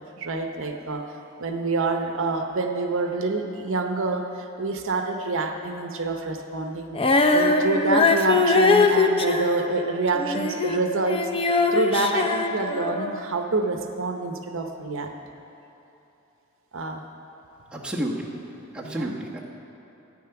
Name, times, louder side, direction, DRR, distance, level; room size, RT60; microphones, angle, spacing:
voice 1, 0.2-1.1 1.4-4.3 4.6-7.0 7.3-15.1 16.7-17.0 18.8-19.1, right 3 dB, 65° right, 5 dB, 0.8 m, -27 dB
Female singing, 6.9-10.8 11.1-13.2, left 3 dB, 25° left, 0.6 m, -21 dB
voice 2, 17.7-18.3 18.7-19.4, right 1 dB, 5° right, -4 dB, 1.2 m, -30 dB
13.0 x 9.3 x 5.8 m, 2.9 s
head